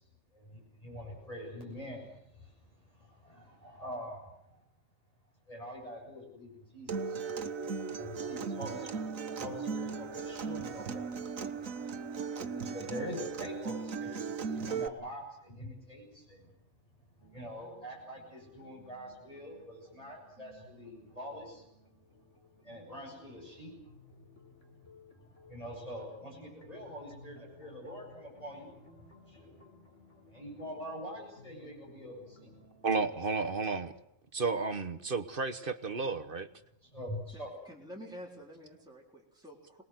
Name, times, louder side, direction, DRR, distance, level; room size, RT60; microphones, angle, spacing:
voice 1, 0.3-2.5 2.9-4.6 5.5-7.2 7.9-11.7 12.5-16.5 17.3-21.7 22.6-23.8 25.4-29.7 30.2-32.6 36.8-37.5, equal, 25° left, -2 dB, 8.0 m, -45 dB
Acoustic guitar, 6.9-14.9, right 5 dB, 75° right, 1.6 m, -37 dB
sound 1, 17.2-34.0, left 3 dB, 60° left, 4.1 m, -59 dB
voice 2, 32.8-33.9 34.3-36.5, right 4 dB, 45° right, 8 dB, 1.2 m, -32 dB
voice 3, 37.3-39.8, equal, 5° right, -2 dB, 4.0 m, -49 dB
27.0 x 20.5 x 7.9 m, 0.77 s
omnidirectional pair, 1.4 m